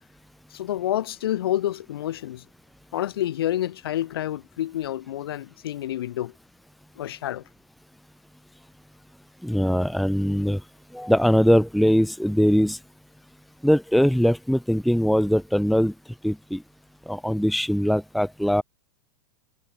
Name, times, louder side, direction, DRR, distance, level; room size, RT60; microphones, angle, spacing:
voice 1, 0.5-2.4 2.9-6.3 7.0-7.4, left 12 dB, 70° left, 6.6 m, -28 dB
voice 2, 9.4-10.6 10.9-12.8 13.6-15.9 16.2-16.6 17.1-18.6, equal, ahead, 1.0 m, -21 dB
supercardioid pair, 160°, 13 cm